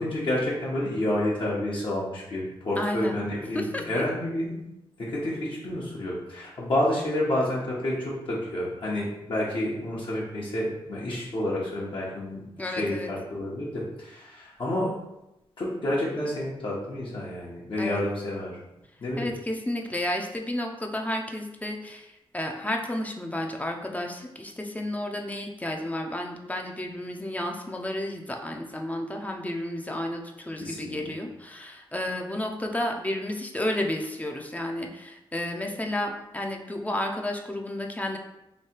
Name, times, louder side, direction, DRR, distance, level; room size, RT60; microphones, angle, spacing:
voice 1, 0.0-4.7 5.0-15.0 15.6-18.6 19.0-19.3 30.6-31.1, left 1 dB, 60° left, -6 dB, 1.0 m, -29 dB
voice 2, 2.8-3.2 3.5-4.0 12.6-13.1 17.8-18.0 19.2-38.2, left 1 dB, 15° left, 2 dB, 0.5 m, -32 dB
3.2 x 2.7 x 4.3 m, 0.91 s
cardioid pair, 80°, 10 cm